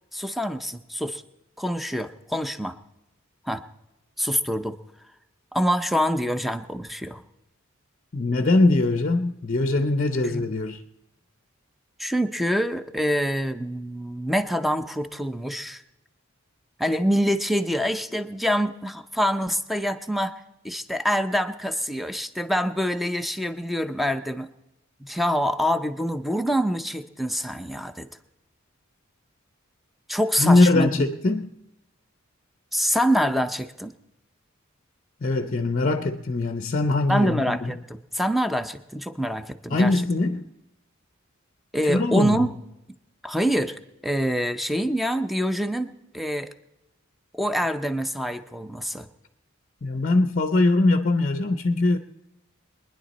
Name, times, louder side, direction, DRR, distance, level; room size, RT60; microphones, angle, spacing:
voice 1, 0.1-1.2 1.6-2.8 3.4-3.6 4.2-4.8 5.5-7.2 10.2-10.4 12.0-15.8 16.8-24.5 25.0-28.1 30.1-31.1 32.7-33.9 37.1-40.0 41.7-42.5 43.2-43.8 44.0-46.5 47.3-49.1, equal, ahead, 0.6 m, -26 dB
voice 2, 8.1-10.8 30.4-31.5 35.2-37.7 39.7-40.5 41.8-42.4 49.8-52.0, left 2 dB, 40° left, 0.6 m, -22 dB
23.0 x 10.5 x 4.1 m
head